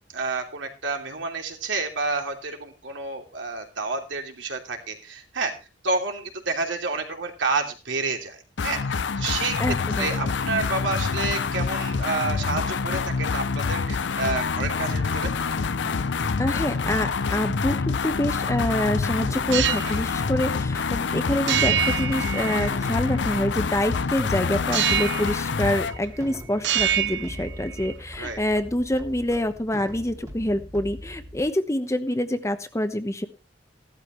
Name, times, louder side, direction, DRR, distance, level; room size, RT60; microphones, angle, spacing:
voice 1, 0.1-5.5 5.8-15.3 21.1-21.2 28.2-28.4, right 3 dB, 85° right, 3 dB, 2.9 m, -29 dB
sound 1, 8.6-26.0, left 5 dB, 70° left, 0.6 m, -26 dB
voice 2, 9.6-10.3 16.4-33.3, left 1 dB, 15° left, 9 dB, 1.0 m, -26 dB
sound 2, 14.3-31.5, equal, 20° right, 1.9 m, -41 dB
sound 3, 19.5-20.0 21.5-22.9 24.7-25.4 25.7-26.3 26.6-27.9, right 10 dB, 70° right, 0.7 m, -26 dB
15.5 x 12.5 x 3.2 m, 0.30 s
head